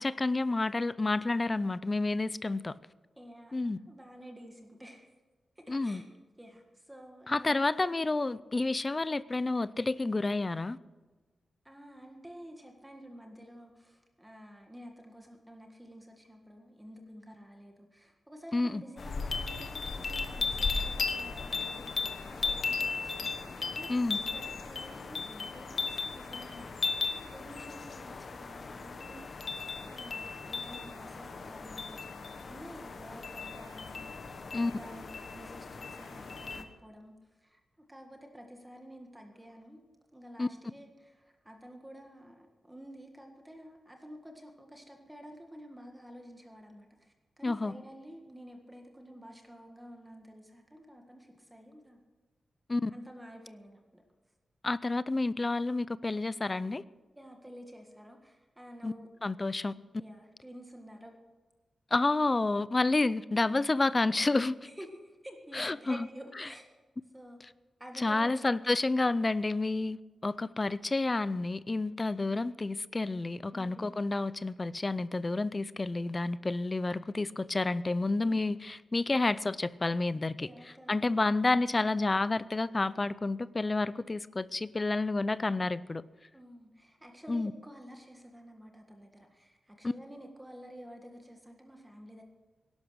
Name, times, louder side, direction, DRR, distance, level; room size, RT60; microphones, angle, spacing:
voice 1, 0.0-2.8 3.5-3.8 5.7-6.0 7.3-10.8 18.5-18.8 23.9-24.2 34.5-34.7 40.4-40.5 47.4-47.7 52.7-52.9 54.6-56.8 58.8-58.9 59.2-59.7 61.9-64.5 65.5-66.1 68.0-80.5 80.9-86.0 87.3-87.5 89.8-89.9, left 2 dB, 20° left, 0.4 m, -30 dB
voice 2, 3.2-5.1 5.6-6.1 6.4-7.6 11.6-39.8 40.1-52.0 52.9-54.0 57.1-59.1 60.0-61.1 64.6-66.7 67.1-67.4 67.8-68.7 73.5-73.9 80.4-81.0 86.3-92.2, equal, 5° right, 1.6 m, -50 dB
sound 1, 19.0-36.6, left 4 dB, 45° left, 1.2 m, -36 dB
18.0 x 11.5 x 6.4 m
wide cardioid pair, 170°, 0 cm